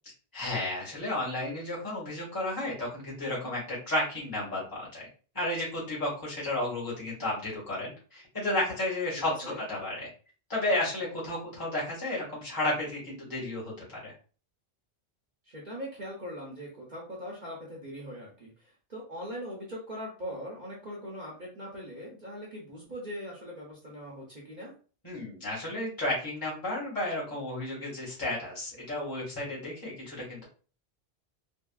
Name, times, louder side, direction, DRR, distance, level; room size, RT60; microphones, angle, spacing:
voice 1, 0.3-5.1 5.3-10.1 10.5-14.1 25.0-30.4, left 1 dB, 20° left, -6 dB, 1.4 m, -32 dB
voice 2, 15.4-24.8, equal, 50° right, -3 dB, 0.8 m, -41 dB
3.5 x 2.2 x 2.3 m, 0.38 s
omnidirectional pair, 1.1 m